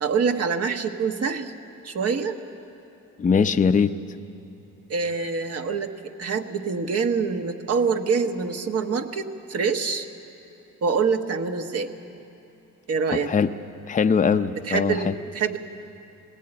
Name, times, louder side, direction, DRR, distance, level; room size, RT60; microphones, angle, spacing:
voice 1, 0.0-1.5 1.8-2.4 4.9-10.1 10.8-11.9 12.9-13.3 14.6-15.6, right 5 dB, 55° right, 6 dB, 1.3 m, -25 dB
voice 2, 3.2-3.9 13.1-13.5 13.9-15.1, left 6 dB, 25° left, 9 dB, 0.6 m, -21 dB
20.0 x 17.0 x 8.9 m, 2.9 s
cardioid pair, 90°, 30 cm